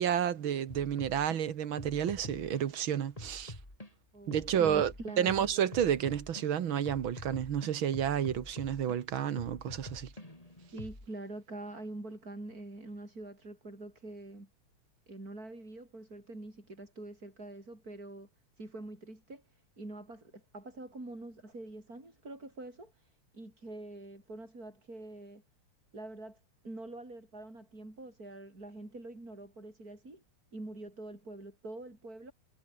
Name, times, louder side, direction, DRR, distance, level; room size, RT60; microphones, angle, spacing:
voice 1, 0.0-3.5 4.3-10.1, right 9 dB, 70° right, 2.1 m, -31 dB
sound 1, 0.7-1.4 1.8-2.6 3.2-3.9 4.3-6.4 6.8-9.0 9.4-11.1, left 1 dB, 15° left, 4.8 m, -46 dB
voice 2, 4.1-5.5 10.7-14.5 15.1-18.3 18.6-25.4 25.9-30.2 30.5-32.3, right 2 dB, 40° right, 7.9 m, -45 dB
omnidirectional pair, 2.4 m